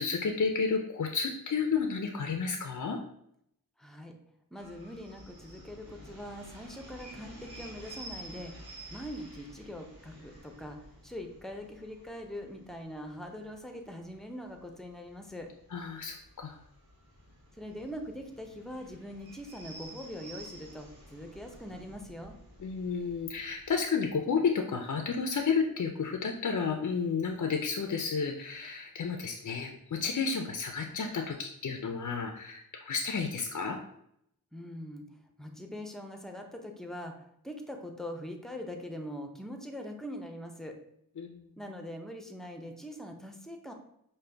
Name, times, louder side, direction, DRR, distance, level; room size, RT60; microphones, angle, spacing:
voice 1, 0.0-3.0 15.7-16.6 22.6-33.8 41.2-41.4, left 5 dB, 55° left, 3 dB, 0.4 m, -31 dB
voice 2, 3.8-4.2 4.5-8.5 8.9-10.8 11.0-15.5 17.5-22.3 34.5-40.8 41.6-43.7, equal, ahead, 4 dB, 0.6 m, -42 dB
sound 1, 4.5-23.8, right 1 dB, 80° right, 1.2 m, -51 dB
5.0 x 2.2 x 3.3 m, 0.73 s
wide cardioid pair, 50°, 36 cm